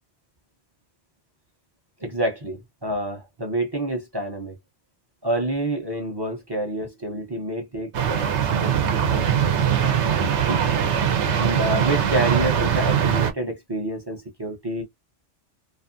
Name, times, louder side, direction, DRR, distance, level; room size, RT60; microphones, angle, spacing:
voice 1, 2.0-4.6 5.2-10.6 11.4-14.8, right 1 dB, 30° right, 0.5 m, -28 dB
sound 1, 7.9-13.3, right 8 dB, 80° right, 0.9 m, -21 dB
2.6 x 2.4 x 2.5 m
omnidirectional pair, 1.2 m